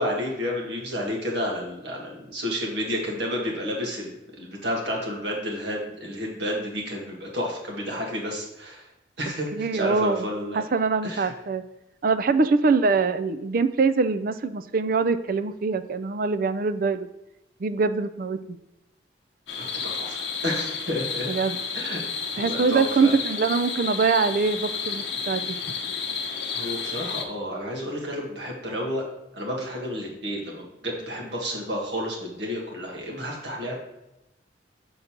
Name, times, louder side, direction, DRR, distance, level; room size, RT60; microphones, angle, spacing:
voice 1, 0.0-8.9 9.2-10.6 11.0-11.3 19.8-21.3 21.8-22.0 22.4-23.1 26.5-29.1 29.3-33.8, equal, 70° right, -1 dB, 1.9 m, -31 dB
voice 2, 9.5-10.3 10.5-11.6 12.0-17.1 17.6-18.6 21.3-21.6 22.4-25.6 26.6-26.7, right 4 dB, 50° right, 11 dB, 0.4 m, -23 dB
sound 1, 19.5-27.2, left 6 dB, 70° left, 0.9 m, -31 dB
6.6 x 3.9 x 5.9 m, 0.92 s
head